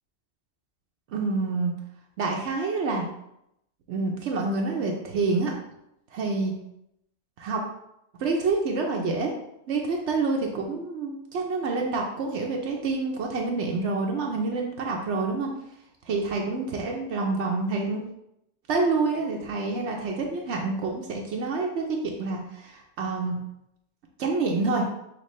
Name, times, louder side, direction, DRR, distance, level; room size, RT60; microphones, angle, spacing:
voice 1, 1.1-1.7 2.2-3.0 3.9-5.5 6.1-6.5 7.4-7.6 8.2-9.3 9.7-15.5 16.1-18.0 18.7-23.4 24.2-24.8, right 3 dB, 85° right, 0 dB, 1.0 m, -27 dB
5.8 x 2.9 x 3.1 m, 0.81 s
omnidirectional pair, 1.1 m